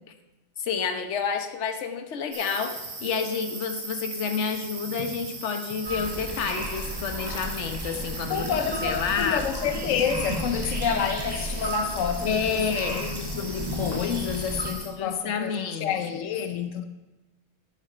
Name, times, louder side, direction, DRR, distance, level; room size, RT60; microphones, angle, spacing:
voice 1, 0.6-8.5 8.8-9.4 12.3-13.0 15.0-15.9, left 6 dB, 50° left, 0.9 m, -29 dB
sound 1, 2.3-14.9, right 3 dB, 60° right, 3.2 m, -40 dB
sound 2, 5.9-14.7, right 1 dB, 15° right, 1.1 m, -33 dB
voice 2, 8.3-16.8, left 8 dB, 80° left, 0.7 m, -29 dB
10.0 x 8.9 x 5.5 m
omnidirectional pair, 2.2 m